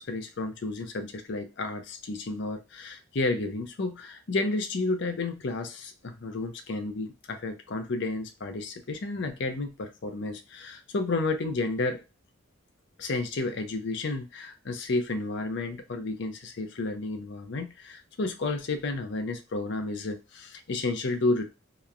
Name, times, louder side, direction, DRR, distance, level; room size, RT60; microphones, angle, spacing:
voice 1, 0.0-12.0 13.0-21.4, left 2 dB, 55° left, 6 dB, 0.5 m, -31 dB
3.0 x 2.1 x 2.4 m, 0.26 s
head